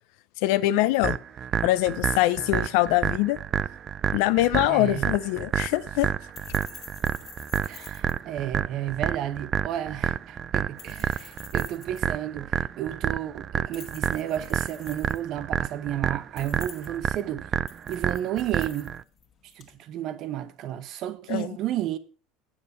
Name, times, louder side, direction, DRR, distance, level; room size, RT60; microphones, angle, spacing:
voice 1, 0.4-1.2 1.6-3.4 4.1-6.1 21.3-21.5, left 16 dB, 70° left, 0.6 m, -23 dB
sound 1, 1.0-19.0, right 8 dB, 30° right, 0.3 m, -29 dB
sound 2, 4.7-19.8, left 7 dB, 35° left, 1.8 m, -50 dB
voice 2, 4.7-5.1 7.7-17.5 17.9-18.9 19.6-22.0, right 12 dB, 50° right, 0.9 m, -32 dB
8.6 x 7.3 x 5.4 m
supercardioid pair, 135°, 0 cm